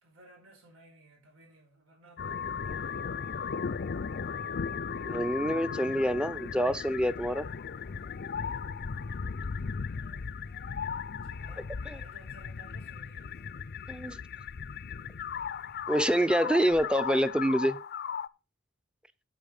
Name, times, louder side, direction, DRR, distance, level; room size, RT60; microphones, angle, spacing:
voice 1, 0.0-3.2 9.8-10.3 11.2-13.5, right 2 dB, 85° right, 4.8 m, -58 dB
sound 1, 2.2-18.3, left 6 dB, 50° left, 0.5 m, -36 dB
voice 2, 5.1-7.4 11.9-12.0 13.9-14.2 15.9-17.8, equal, 5° right, 0.6 m, -27 dB
8.7 x 8.4 x 5.4 m
head